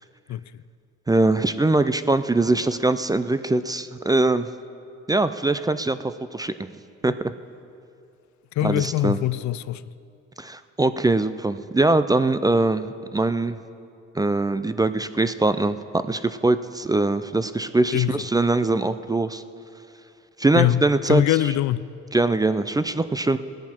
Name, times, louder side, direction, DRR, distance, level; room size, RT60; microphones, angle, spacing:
voice 1, 0.3-0.6 8.6-9.8 17.9-18.2 20.5-21.9, left 14 dB, 70° left, 0.4 m, -23 dB
voice 2, 1.1-4.5 5.1-6.0 6.3-6.7 7.0-7.3 8.6-9.2 10.4-13.6 14.2-15.8 16.1-19.4 20.4-21.2 22.1-23.4, right 2 dB, 15° right, 0.4 m, -22 dB
17.0 x 10.5 x 4.4 m
cardioid pair, 90°, 30 cm